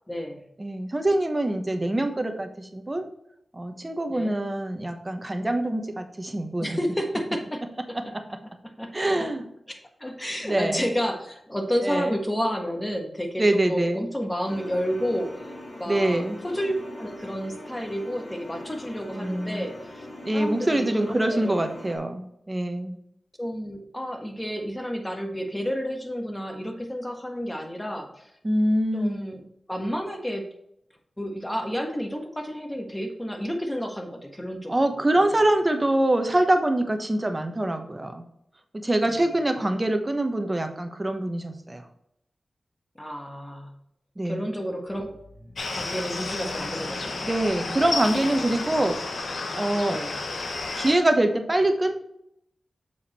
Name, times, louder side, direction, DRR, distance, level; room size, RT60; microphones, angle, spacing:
voice 1, 0.1-0.4 4.1-4.3 6.6-8.0 8.8-9.3 9.7-15.3 15.7-20.1 20.3-21.6 23.4-28.3 28.9-29.4 29.7-30.5 31.2-34.7 35.2-35.3 39.0-39.6 43.0-43.7 44.2-45.2 45.7-47.2 47.6-48.8 49.9-50.2, equal, 15° left, 3 dB, 1.4 m, -31 dB
voice 2, 0.6-3.0 3.5-6.8 8.1-8.2 8.9-9.4 10.4-10.9 11.8-12.2 13.4-14.0 15.9-16.4 19.1-19.7 20.2-23.0 28.4-29.3 34.7-38.2 38.7-41.8 44.2-44.4 47.2-49.0 49.5-50.0 50.7-51.9, right 1 dB, 25° right, 6 dB, 1.1 m, -24 dB
sound 1, 14.4-22.0, left 1 dB, 50° left, 2.8 m, -42 dB
sound 2, 44.9-49.3, equal, 5° right, 2.5 m, -45 dB
sound 3, 45.5-50.9, left 3 dB, 75° left, 1.1 m, -32 dB
7.1 x 4.9 x 4.3 m, 0.77 s
wide cardioid pair, 70°, 0 cm